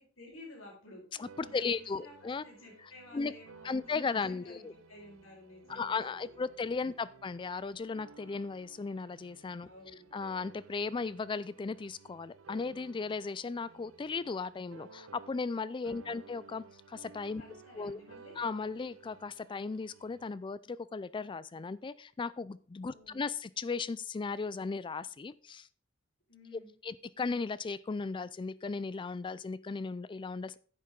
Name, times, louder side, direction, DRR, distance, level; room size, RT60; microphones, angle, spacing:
voice 1, 0.0-1.0 1.4-2.1 2.4-6.5 9.6-10.1 15.9-16.2 17.4-18.4 22.9-23.2 26.3-26.7, left 2 dB, 90° left, -3 dB, 5.3 m, -53 dB
voice 2, 1.2-2.4 3.1-3.3 3.6-4.7 5.7-9.7 10.1-17.4 17.8-18.0 18.4-25.7 26.8-30.6, left 4 dB, 25° left, 18 dB, 0.3 m, -36 dB
sound 1, 1.2-15.6 15.8-20.3, right 5 dB, 75° right, 0.5 m, -57 dB
10.0 x 7.6 x 3.8 m, 0.43 s
head